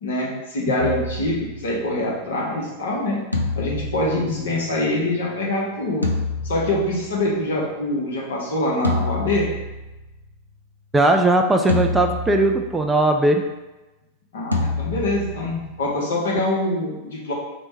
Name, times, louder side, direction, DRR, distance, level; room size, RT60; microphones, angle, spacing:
voice 1, 0.0-3.2 3.5-6.0 6.4-9.5 14.3-17.3, left 1 dB, 65° left, -3 dB, 0.8 m, -24 dB
sound 1, 0.8-2.1 3.3-5.0 6.0-7.4 8.8-10.2 11.7-12.9 14.5-15.9, left 2 dB, 85° left, 0.4 m, -28 dB
voice 2, 10.9-13.4, right 2 dB, 10° right, 3 dB, 0.3 m, -18 dB
3.1 x 2.1 x 4.0 m, 1.1 s
figure-of-eight pair, 90°, 0 cm